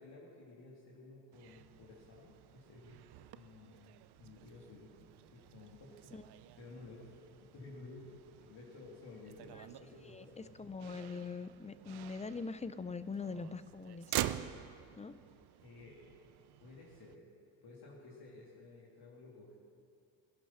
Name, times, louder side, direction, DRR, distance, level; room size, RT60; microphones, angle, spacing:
voice 1, 0.0-3.0 3.3-3.9 4.2-6.1 6.6-10.5 15.6-16.0 16.6-17.2 17.6-19.5, left 3 dB, 50° left, -5 dB, 2.9 m, -54 dB
Motor vehicle (road), 1.3-17.2, right 13 dB, 55° right, 0.7 m, -47 dB
voice 2, 10.0-14.1 15.0-15.1, left 4 dB, 15° left, 13 dB, 0.5 m, -43 dB
17.0 x 11.0 x 5.7 m, 2.5 s
supercardioid pair, 75°, 49 cm